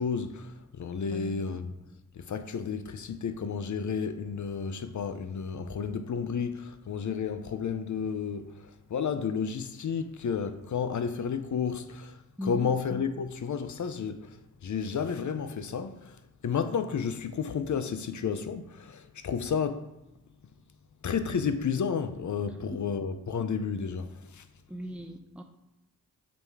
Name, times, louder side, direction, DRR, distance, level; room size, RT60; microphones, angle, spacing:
voice 1, 0.0-1.8 2.1-19.9 21.0-24.4, left 6 dB, 60° left, 0.7 m, -32 dB
voice 2, 1.1-1.4 12.4-12.7 22.5-22.8 24.7-25.4, equal, 5° right, 0.7 m, -38 dB
7.5 x 3.3 x 4.7 m
cardioid pair, 50°, 33 cm